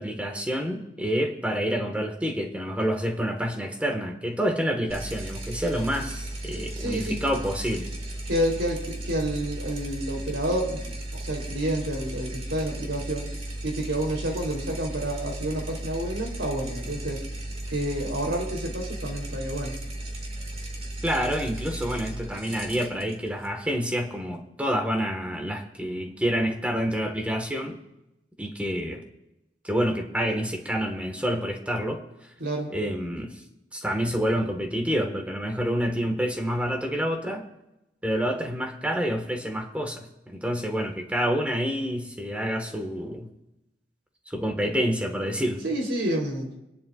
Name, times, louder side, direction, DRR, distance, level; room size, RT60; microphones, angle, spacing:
voice 1, 0.0-7.9 21.0-27.8 28.4-29.0 29.6-32.0 32.7-33.4 33.7-37.4 38.0-43.3 44.3-45.6, equal, 5° right, 3 dB, 1.5 m, -28 dB
sound 1, 4.9-24.2, right 1 dB, 35° right, 2.1 m, -36 dB
voice 2, 6.7-7.2 8.2-13.3 13.6-17.2 17.7-19.8 32.4-32.7 45.6-46.5, right 1 dB, 90° right, 0 dB, 3.5 m, -29 dB
26.0 x 10.5 x 2.4 m, 0.90 s
head